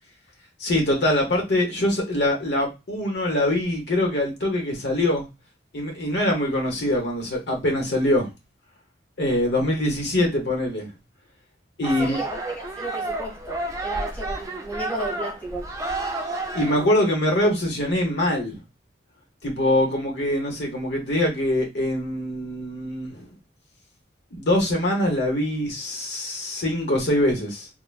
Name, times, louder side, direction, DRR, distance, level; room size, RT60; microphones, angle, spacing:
voice 1, 0.6-5.3 5.7-8.3 9.2-10.9 11.8-12.2 16.5-18.6 19.4-23.3 24.3-27.7, left 1 dB, 65° left, 0.9 m, -23 dB
sound 1, 11.8-16.9, right 2 dB, 20° right, 0.4 m, -31 dB
voice 2, 12.0-15.7, right 2 dB, 10° left, 1.1 m, -33 dB
3.3 x 2.2 x 2.3 m
head